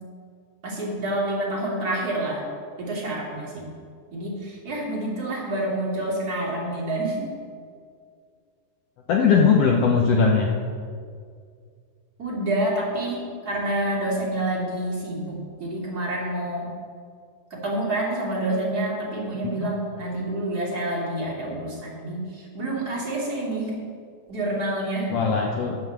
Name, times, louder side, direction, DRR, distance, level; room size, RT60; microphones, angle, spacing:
voice 1, 0.6-2.4 2.8-3.7 4.1-7.3 12.2-16.7 17.5-23.7 24.3-25.1, right 1 dB, 30° right, -4 dB, 3.0 m, -28 dB
voice 2, 9.1-10.5 19.6-19.7 25.1-25.8, left 5 dB, 70° left, 0 dB, 1.5 m, -19 dB
11.0 x 7.7 x 7.3 m, 2.2 s
omnidirectional pair, 3.8 m